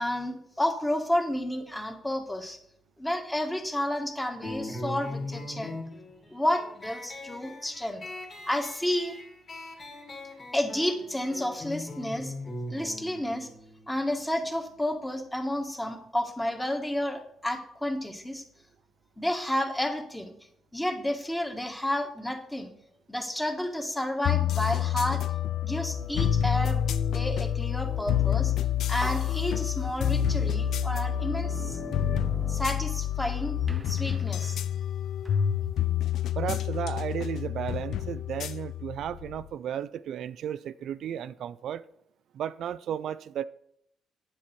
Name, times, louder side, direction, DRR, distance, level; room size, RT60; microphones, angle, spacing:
voice 1, 0.0-2.6 3.0-5.7 6.3-8.0 8.5-9.1 10.5-12.3 12.7-13.5 13.9-18.4 19.2-20.3 20.7-22.7 23.1-25.2 25.6-26.8 27.1-28.5 28.9-31.8 32.5-33.6 33.9-34.6, left 1 dB, 10° left, 1.6 m, -31 dB
sound 1, 4.4-15.5, left 1 dB, 40° left, 2.3 m, -41 dB
sound 2, 24.2-39.5, left 10 dB, 75° left, 0.5 m, -28 dB
sound 3, 28.4-28.6 29.0-30.3 30.9-33.3 33.7-35.5, right 3 dB, 25° right, 0.6 m, -43 dB
voice 2, 36.4-41.9 42.3-43.4, right 9 dB, 70° right, 0.3 m, -34 dB
9.9 x 7.3 x 4.5 m
cardioid pair, 90°, 0 cm